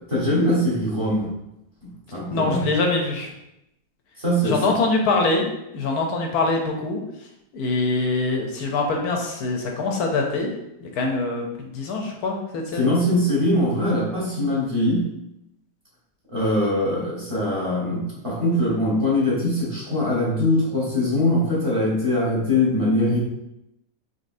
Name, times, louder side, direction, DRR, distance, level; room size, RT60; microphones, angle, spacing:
voice 1, 0.1-1.3 1.8-2.6 4.2-4.6 12.8-15.1 16.3-23.2, left 1 dB, 20° right, -7 dB, 1.0 m, -22 dB
voice 2, 2.3-3.3 4.4-5.5 5.7-7.3 7.5-10.5 10.8-12.9, left 3 dB, 70° left, 1 dB, 1.0 m, -24 dB
4.0 x 3.4 x 2.5 m, 0.86 s
omnidirectional pair, 1.9 m